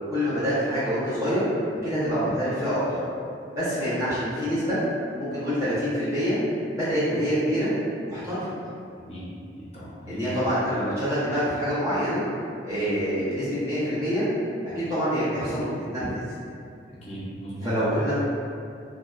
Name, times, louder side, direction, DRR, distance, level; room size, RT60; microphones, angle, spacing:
voice 1, 0.1-1.5 1.8-3.0 3.5-4.8 5.2-6.4 6.8-7.7 8.1-8.5 10.1-12.2 12.6-14.3 14.9-16.3 17.6-18.1, equal, 15° right, -14 dB, 0.7 m, -26 dB
voice 2, 9.6-10.4 17.0-18.1, equal, 35° left, -9 dB, 0.6 m, -35 dB
2.7 x 2.0 x 2.2 m, 2.5 s
head